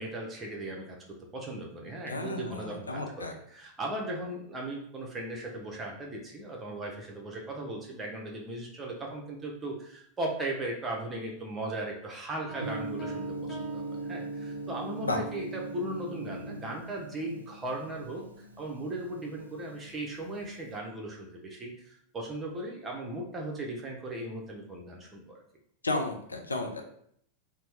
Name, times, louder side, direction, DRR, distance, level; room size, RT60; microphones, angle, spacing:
voice 1, 0.0-3.3 3.5-25.4, right 1 dB, 20° right, -1 dB, 0.8 m, -37 dB
voice 2, 2.1-3.4 15.0-15.2 25.8-26.9, left 2 dB, 80° left, 2 dB, 0.5 m, -33 dB
sound 1, 12.5-14.9, right 3 dB, 25° left, 0.7 m, -46 dB
Gong, 12.6-20.7, right 2 dB, 80° right, 0.3 m, -40 dB
2.8 x 2.2 x 3.3 m, 0.67 s
figure-of-eight pair, 90°, 0 cm